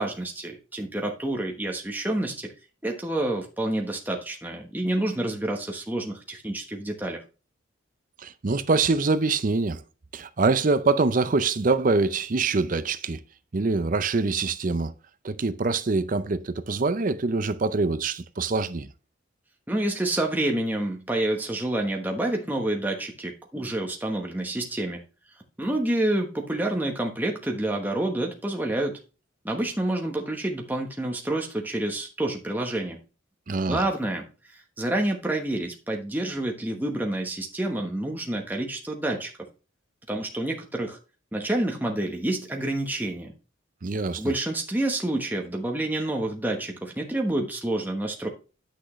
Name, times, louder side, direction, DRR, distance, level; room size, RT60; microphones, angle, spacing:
voice 1, 0.0-2.5 2.8-7.2 19.7-25.0 25.6-29.0 29.4-33.0 33.7-39.3 40.1-41.0 41.3-43.3 44.2-48.3, right 1 dB, 10° right, 1.1 m, -28 dB
voice 2, 8.2-9.8 10.1-13.2 13.5-14.9 15.2-18.9 33.5-33.8 43.8-44.3, right 3 dB, 40° right, 0.5 m, -24 dB
10.0 x 6.3 x 3.1 m
head